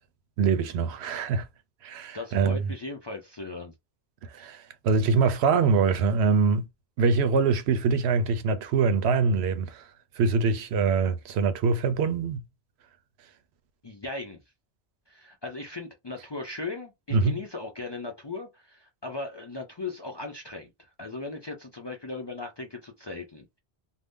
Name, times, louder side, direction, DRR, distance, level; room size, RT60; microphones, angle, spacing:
voice 1, 0.4-1.5 1.8-2.7 4.3-6.6 7.0-9.9 10.2-12.4 17.1-17.4, right 5 dB, 90° right, 0.9 m, -24 dB
voice 2, 2.1-3.7 13.8-14.4 15.1-23.6, left 3 dB, 40° left, 0.4 m, -38 dB
2.6 x 2.1 x 3.5 m
omnidirectional pair, 1.1 m